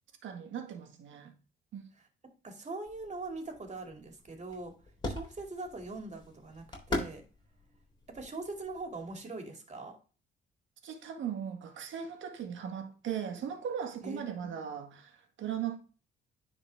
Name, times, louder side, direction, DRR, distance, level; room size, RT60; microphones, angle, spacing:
voice 1, 0.2-1.3 1.7-1.8 10.8-15.8, right 8 dB, 75° right, 1.7 m, -38 dB
voice 2, 2.2-4.8 5.0-7.2 8.1-10.0 14.0-14.4, right 2 dB, 35° right, 2.5 m, -42 dB
sound 1, 2.9-9.2, left 2 dB, 20° left, 3.7 m, -42 dB
10.0 x 4.3 x 3.4 m
cardioid pair, 90°, 20 cm